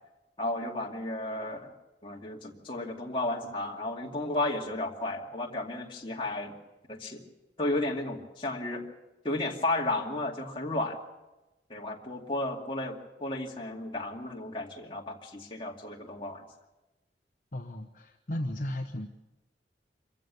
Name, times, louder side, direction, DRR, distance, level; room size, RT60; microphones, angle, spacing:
voice 1, 0.4-1.7 2.0-6.5 6.9-7.2 7.6-8.9 9.2-11.0 11.7-16.4, left 2 dB, 30° left, -1 dB, 2.4 m, -33 dB
voice 2, 17.5-19.1, left 1 dB, 50° left, 3 dB, 1.1 m, -35 dB
26.5 x 15.0 x 6.9 m, 1.0 s
head